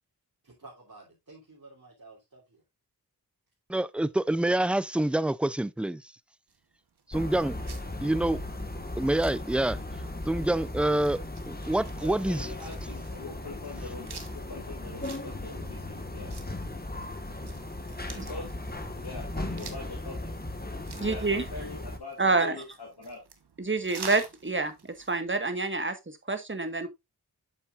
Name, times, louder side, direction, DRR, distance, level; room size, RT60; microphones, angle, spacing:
voice 1, 0.4-2.6, right 3 dB, 55° right, 3.1 m, -51 dB
voice 2, 3.7-6.1 7.1-7.6 8.0-8.4 9.0-9.8 10.3-11.2 11.5-12.5, right 1 dB, 5° right, 0.4 m, -27 dB
sound 1, 6.5-25.2, right 5 dB, 80° right, 1.2 m, -50 dB
sound 2, 7.1-22.0, left 1 dB, 25° left, 1.6 m, -37 dB
voice 3, 12.0-16.5 18.1-18.5 18.9-20.3 21.0-23.2, left 3 dB, 75° left, 2.9 m, -43 dB
voice 4, 21.0-21.4 22.2-22.6 23.6-24.7 25.1-26.9, right 3 dB, 30° right, 1.5 m, -27 dB
8.5 x 7.2 x 2.5 m
cardioid pair, 40°, 39 cm